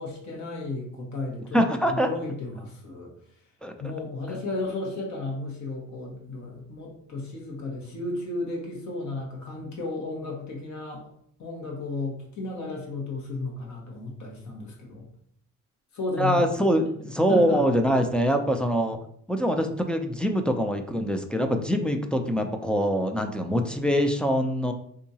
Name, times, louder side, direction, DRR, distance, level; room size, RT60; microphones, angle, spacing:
voice 1, 0.0-3.1 3.8-11.1 11.4-15.1 15.9-16.5 17.3-17.6, left 2 dB, 65° left, -1 dB, 1.2 m, -33 dB
voice 2, 1.5-2.1 3.6-3.7 4.3-4.4 16.2-19.0 19.3-24.7, equal, 5° left, 4 dB, 0.3 m, -24 dB
3.6 x 2.7 x 2.8 m, 0.66 s
cardioid pair, 90°, 30 cm